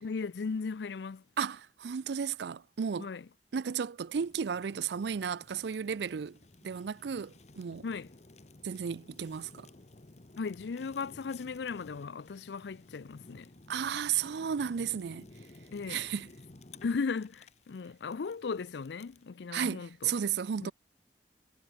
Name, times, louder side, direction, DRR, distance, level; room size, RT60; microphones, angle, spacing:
voice 1, 0.0-1.2 3.0-3.3 7.8-8.1 10.4-13.5 15.7-16.0 16.8-20.2 20.6-20.7, left 5 dB, 75° left, 0.5 m, -37 dB
voice 2, 1.4-3.1 3.5-6.3 6.6-7.8 8.6-9.7 13.7-15.3 15.9-16.3 19.5-20.7, right 7 dB, 70° right, 0.4 m, -34 dB
Fire, 4.1-19.3, left 2 dB, 40° left, 1.1 m, -55 dB
head